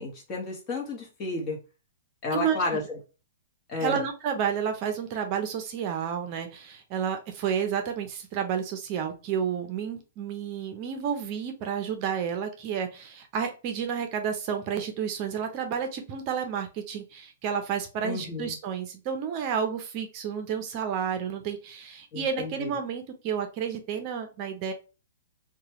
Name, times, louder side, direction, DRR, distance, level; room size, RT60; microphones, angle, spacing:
voice 1, 0.0-1.6 2.2-3.0 3.7-4.0 18.0-18.5 22.1-22.7, left 2 dB, 25° left, -2 dB, 1.1 m, -32 dB
voice 2, 3.8-24.7, right 7 dB, 35° right, 6 dB, 0.6 m, -31 dB
2.9 x 2.2 x 2.9 m, 0.31 s
hypercardioid pair, 155°, 0 cm